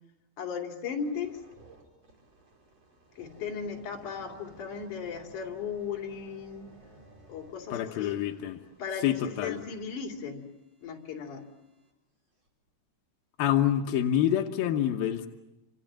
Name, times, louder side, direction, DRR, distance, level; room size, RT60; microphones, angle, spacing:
voice 1, 0.4-1.4 3.2-6.7 7.3-8.2 8.8-10.5 10.8-11.5, left 6 dB, 45° left, 2 dB, 3.6 m, -36 dB
sound 1, 1.0-11.9 12.5-12.7, right 2 dB, 35° right, 5.4 m, -57 dB
voice 2, 7.7-8.6 9.0-9.6 13.4-15.3, left 11 dB, 75° left, 3 dB, 2.2 m, -27 dB
29.5 x 26.5 x 7.5 m, 0.95 s
omnidirectional pair, 5.7 m